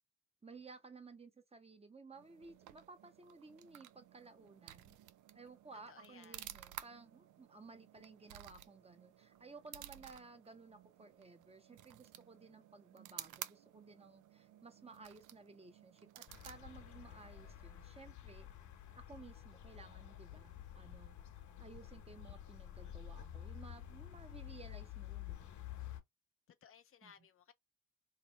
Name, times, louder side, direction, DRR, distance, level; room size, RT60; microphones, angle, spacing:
voice 1, 0.4-5.0 5.3-18.5 19.0-21.2 21.6-25.5 27.0-27.1, right 4 dB, 20° right, 0.8 m, -56 dB
sound 1, 2.1-17.7, right 13 dB, 85° right, 0.5 m, -54 dB
voice 2, 5.9-6.5 26.5-27.5, left 7 dB, 45° left, 0.6 m, -61 dB
sound 2, 16.3-26.0, left 11 dB, 70° left, 1.1 m, -50 dB
2.9 x 2.7 x 4.2 m
cardioid pair, 90°, 30 cm